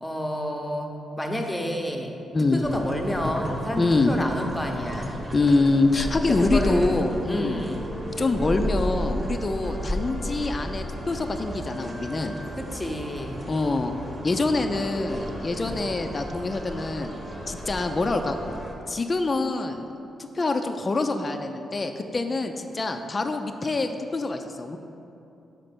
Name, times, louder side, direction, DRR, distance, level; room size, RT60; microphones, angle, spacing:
voice 1, 0.0-2.2 2.5-5.2 6.3-7.0 7.3-7.9 12.6-13.4 15.5-15.8, equal, 10° left, 2 dB, 0.8 m, -30 dB
voice 2, 2.3-2.6 3.8-4.1 5.3-7.6 8.2-12.4 13.5-14.0 14.2-17.1 17.5-18.4 18.9-19.8 20.2-24.8, left 3 dB, 35° left, 6 dB, 0.4 m, -25 dB
sound 1, 2.6-18.7, equal, 25° right, 1.0 m, -33 dB
5.1 x 4.4 x 5.9 m, 2.8 s
cardioid pair, 70°, 0 cm